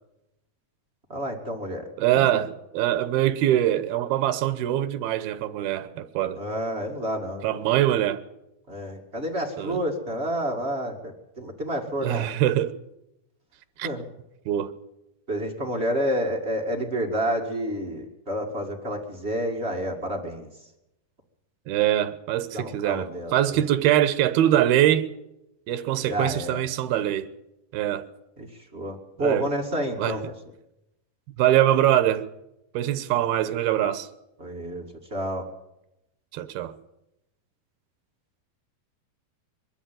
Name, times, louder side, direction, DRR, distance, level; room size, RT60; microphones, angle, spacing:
voice 1, 1.1-1.9 6.4-7.5 8.7-12.3 13.8-14.0 15.3-20.5 22.5-23.6 26.0-26.6 28.4-28.5 28.7-30.2 34.4-34.8 35.1-35.5, equal, 25° right, 1.6 m, -29 dB
voice 2, 2.0-2.5 2.7-6.4 7.4-8.2 9.6-9.8 12.0-12.7 13.8-13.9 14.5-14.7 21.7-25.1 25.7-27.3 27.7-28.1 29.2-29.5 30.0-30.2 31.4-32.3 32.7-34.1 36.3-36.7, right 12 dB, 85° right, 2.9 m, -23 dB
22.0 x 13.0 x 9.1 m
omnidirectional pair, 4.3 m